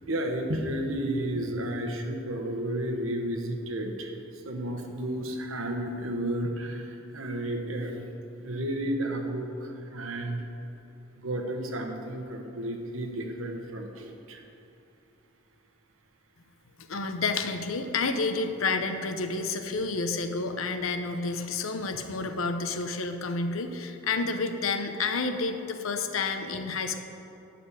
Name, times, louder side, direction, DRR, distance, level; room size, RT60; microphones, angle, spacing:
voice 1, 0.1-8.0 8.4-10.4 11.2-14.4, right 1 dB, 75° right, 3 dB, 1.2 m, -32 dB
voice 2, 16.9-27.0, left 4 dB, 80° left, 7 dB, 0.8 m, -30 dB
12.5 x 4.3 x 8.3 m, 2.9 s
head